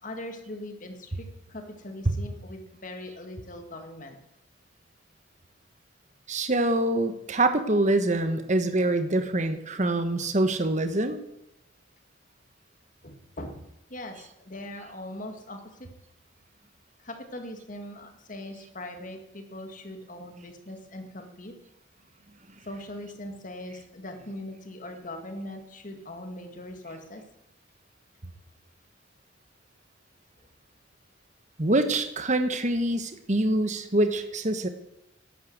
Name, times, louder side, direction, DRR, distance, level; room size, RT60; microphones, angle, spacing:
voice 1, 0.0-4.2 13.0-13.6 13.9-15.9 17.0-21.5 22.6-27.2, left 1 dB, 40° left, 5 dB, 2.0 m, -40 dB
voice 2, 6.3-11.2 31.6-34.7, right 1 dB, 40° right, 8 dB, 1.2 m, -25 dB
11.5 x 9.6 x 7.9 m, 0.84 s
head